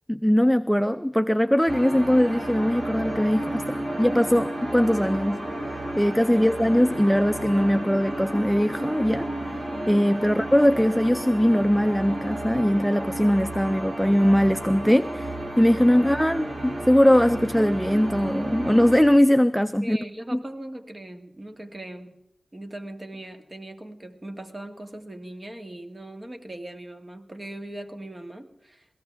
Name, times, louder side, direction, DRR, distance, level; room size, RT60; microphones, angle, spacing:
voice 1, 0.1-3.6 4.0-5.5 6.0-9.5 9.9-20.0 20.3-20.4, equal, ahead, 11 dB, 0.5 m, -21 dB
sound 1, 1.7-19.0, right 1 dB, 60° right, 3.1 m, -32 dB
voice 2, 6.3-6.7 19.8-22.1 22.5-28.9, right 1 dB, 35° right, 6 dB, 1.9 m, -40 dB
21.5 x 17.5 x 3.5 m, 0.81 s
cardioid pair, 40°, 0 cm